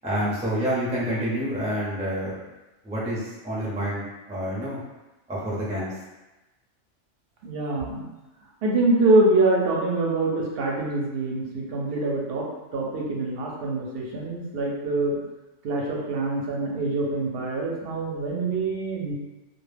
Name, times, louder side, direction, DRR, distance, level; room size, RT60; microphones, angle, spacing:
voice 1, 0.0-2.3 2.8-4.8 5.3-5.9, equal, 10° right, -7 dB, 0.4 m, -28 dB
voice 2, 7.4-8.1 8.6-12.5 12.7-15.2 15.6-19.1, right 2 dB, 60° right, -2 dB, 0.7 m, -24 dB
2.2 x 2.1 x 3.2 m, 1.1 s
omnidirectional pair, 1.3 m